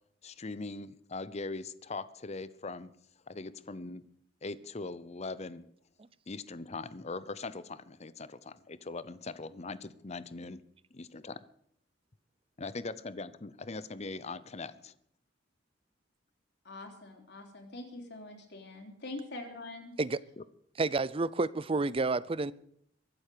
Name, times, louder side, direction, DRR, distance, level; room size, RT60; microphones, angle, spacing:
voice 1, 0.2-2.9 3.3-4.1 4.4-5.7 6.3-10.6 10.9-11.4 12.6-14.9 20.4-20.5, left 3 dB, 35° left, 0.8 m, -41 dB
voice 2, 16.6-19.9, left 2 dB, 65° left, 3.5 m, -44 dB
voice 3, 20.8-22.5, right 3 dB, 30° right, 0.5 m, -30 dB
23.0 x 8.0 x 6.8 m
head